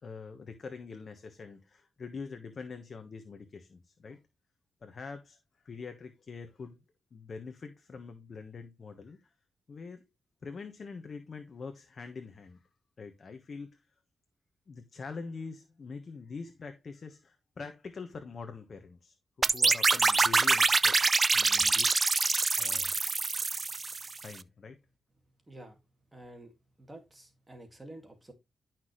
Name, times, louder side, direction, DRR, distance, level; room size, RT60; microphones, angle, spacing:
voice 1, 0.0-4.2 4.8-5.4 5.6-6.8 7.1-9.3 9.7-10.0 10.4-12.7 13.0-13.9 14.7-21.0 21.3-22.2 22.6-23.0 24.2-24.8, left 4 dB, 50° left, 1.3 m, -44 dB
sound 1, 19.4-24.2, right 4 dB, 35° right, 0.5 m, -25 dB
voice 2, 25.5-25.8 26.1-26.5 26.8-28.3, right 1 dB, 15° right, 2.4 m, -49 dB
11.5 x 6.0 x 3.2 m
cardioid pair, 95°, 0 cm